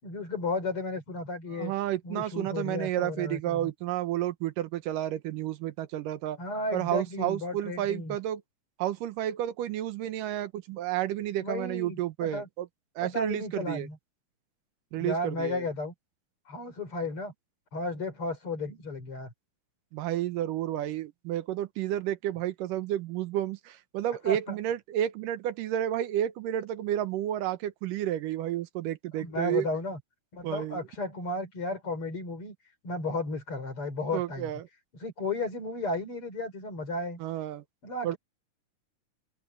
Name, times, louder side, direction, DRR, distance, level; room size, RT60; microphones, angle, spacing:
voice 1, 0.0-1.7 2.0-3.7 6.4-8.2 11.4-12.5 13.0-14.0 14.9-15.9 16.5-17.3 17.7-19.3 24.2-24.6 29.1-30.0 30.3-32.5 32.8-34.5 35.0-37.2 37.8-38.2, left 2 dB, 40° left, 4.9 m, -34 dB
voice 2, 1.5-6.4 6.7-8.4 8.8-12.7 13.0-13.9 14.9-15.7 19.9-29.7 30.4-30.8 34.1-34.6 37.2-37.6 38.0-38.2, right 12 dB, 85° right, 2.6 m, -31 dB
open air
omnidirectional pair, 3.7 m